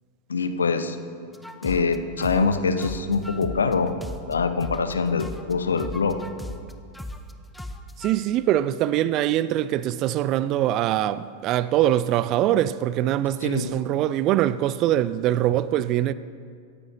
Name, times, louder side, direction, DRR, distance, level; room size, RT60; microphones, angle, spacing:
voice 1, 0.3-1.0 1.6-3.9 4.3-6.2 13.4-13.8, left 4 dB, 70° left, 0.9 m, -24 dB
sound 1, 1.3-4.9 5.2-8.1, left 1 dB, 5° left, 0.8 m, -37 dB
voice 2, 8.0-16.1, right 12 dB, 35° right, 0.5 m, -23 dB
26.0 x 14.0 x 2.8 m
figure-of-eight pair, 90°, 0 cm